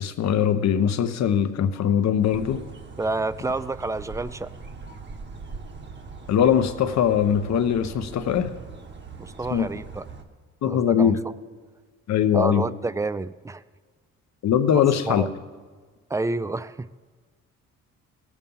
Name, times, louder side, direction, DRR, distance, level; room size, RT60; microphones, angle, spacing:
voice 1, 0.0-2.6 6.3-8.5 9.5-9.7 10.6-11.2 12.1-12.7 14.4-15.2, left 8 dB, 65° left, 9 dB, 0.9 m, -21 dB
sound 1, 2.2-10.2, right 4 dB, 35° right, 1.3 m, -41 dB
voice 2, 3.0-4.5 9.2-10.1 10.7-11.2 12.3-13.6 15.1-15.3 16.1-16.9, right 2 dB, 10° right, 16 dB, 0.3 m, -29 dB
17.5 x 7.3 x 5.5 m, 1.5 s
cardioid pair, 90°, 30 cm